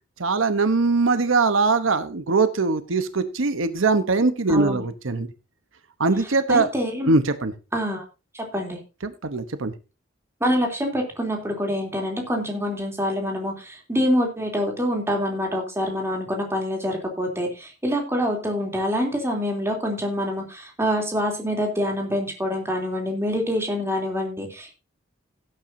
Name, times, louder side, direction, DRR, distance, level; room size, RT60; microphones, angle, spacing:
voice 1, 0.2-5.3 6.0-6.7 7.1-7.5 9.0-9.7, right 3 dB, 85° right, 11 dB, 1.0 m, -21 dB
voice 2, 4.5-4.8 6.5-7.1 7.7-8.0 8.3-8.8 10.4-24.8, equal, 15° right, 2 dB, 3.2 m, -26 dB
17.0 x 9.0 x 2.7 m, 0.30 s
head